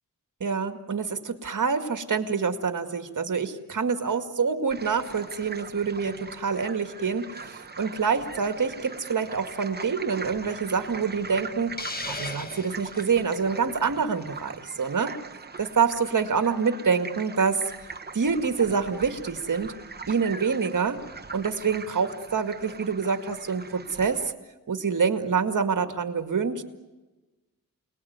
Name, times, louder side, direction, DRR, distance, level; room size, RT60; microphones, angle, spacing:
voice 1, 0.4-15.1 15.6-17.6 18.1-19.7 20.1-21.0 21.3-24.3 24.7-26.6, right 5 dB, 60° right, 8 dB, 2.1 m, -26 dB
sound 1, 4.7-24.3, right 4 dB, 30° right, 1.1 m, -42 dB
Hiss, 11.8-13.1, left 2 dB, 25° left, 2.0 m, -35 dB
28.5 x 19.5 x 9.5 m, 1.2 s
wide cardioid pair, 95°, 34 cm